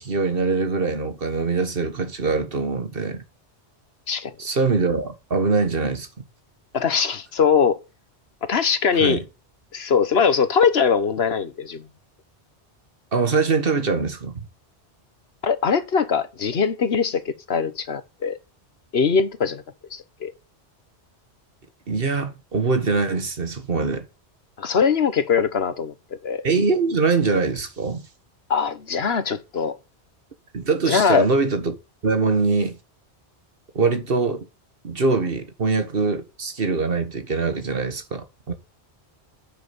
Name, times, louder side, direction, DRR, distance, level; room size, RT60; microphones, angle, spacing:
voice 1, 0.0-3.2 4.4-6.1 9.0-9.2 13.1-14.4 21.9-24.1 26.4-28.0 30.5-31.8 32.0-32.8 33.7-34.5 34.8-38.5, right 4 dB, 55° right, 1.6 m, -23 dB
voice 2, 6.7-7.8 8.5-9.2 9.7-11.8 15.4-17.2 17.5-18.4 18.9-19.6 19.9-20.3 24.6-25.9 26.2-26.4 28.5-29.7 30.9-31.3, left 6 dB, 65° left, 1.3 m, -21 dB
9.9 x 6.7 x 7.0 m
omnidirectional pair, 1.1 m